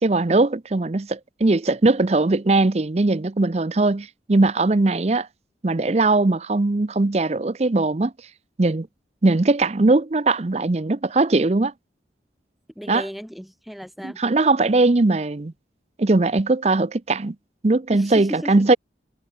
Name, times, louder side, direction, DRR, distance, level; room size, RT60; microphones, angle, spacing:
voice 1, 0.0-5.3 5.6-8.1 8.6-8.9 9.2-11.7 12.9-13.0 14.0-15.5 16.0-17.4 17.6-18.8, right 2 dB, 35° right, 0.6 m, -20 dB
voice 2, 12.7-14.2 17.9-18.6, equal, ahead, 4.5 m, -35 dB
head